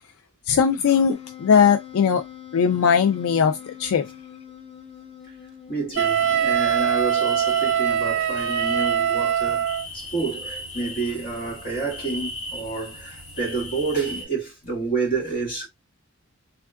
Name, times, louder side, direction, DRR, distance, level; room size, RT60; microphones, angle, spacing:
voice 1, 0.5-2.2 2.5-4.0, left 7 dB, 90° left, 0.4 m, -19 dB
Wind instrument woodwind instrument, 1.1-6.5, left 10 dB, 25° left, 0.6 m, -43 dB
voice 2, 5.7-9.7 9.9-15.7, right 4 dB, 45° left, 1.8 m, -29 dB
sound 1, 5.9-14.2, left 1 dB, 60° left, 1.2 m, -37 dB
Wind instrument woodwind instrument 2, 6.0-9.9, right 8 dB, 60° right, 0.4 m, -22 dB
3.5 x 2.3 x 2.2 m
head